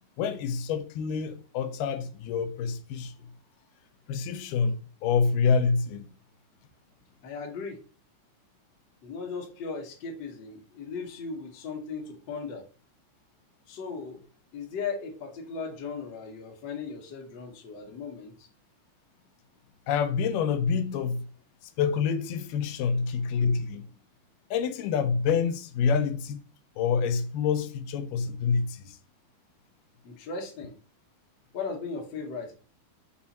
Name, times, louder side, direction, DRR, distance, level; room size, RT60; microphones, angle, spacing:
voice 1, 0.2-3.3 4.1-6.1 19.9-21.3 21.6-23.9 24.5-26.4 26.8-29.0, left 6 dB, 85° left, 2.1 m, -27 dB
voice 2, 7.2-7.8 9.0-12.6 13.7-14.2 14.5-18.5 30.0-30.7 31.5-32.5, left 5 dB, 70° left, 1.1 m, -37 dB
5.5 x 2.4 x 4.1 m
omnidirectional pair, 3.7 m